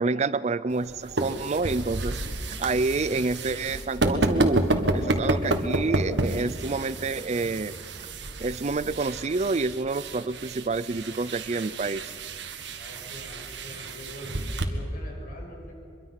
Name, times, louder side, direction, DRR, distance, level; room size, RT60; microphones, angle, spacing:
voice 1, 0.0-2.2 2.6-4.6 4.9-7.7 8.4-12.1, right 3 dB, 40° right, 15 dB, 0.5 m, -28 dB
sound 1, 0.7-14.7, right 2 dB, 75° right, 1.7 m, -30 dB
voice 2, 12.8-15.7, left 1 dB, 50° left, 0 dB, 6.0 m, -44 dB
24.5 x 23.0 x 5.9 m, 2.7 s
head